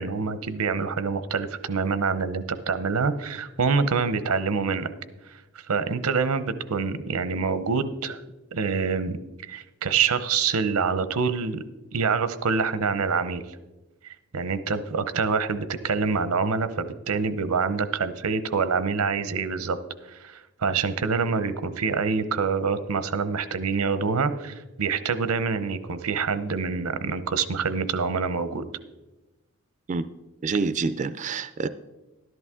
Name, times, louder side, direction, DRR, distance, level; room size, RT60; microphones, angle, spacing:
voice 1, 0.0-4.9 5.6-8.2 8.5-9.2 9.4-11.6 11.9-13.4 14.0-19.8 20.0-28.6, right 5 dB, 90° right, 12 dB, 0.7 m, -26 dB
voice 2, 30.4-31.7, right 4 dB, 35° right, 13 dB, 0.3 m, -27 dB
13.0 x 11.0 x 3.7 m, 1.1 s
head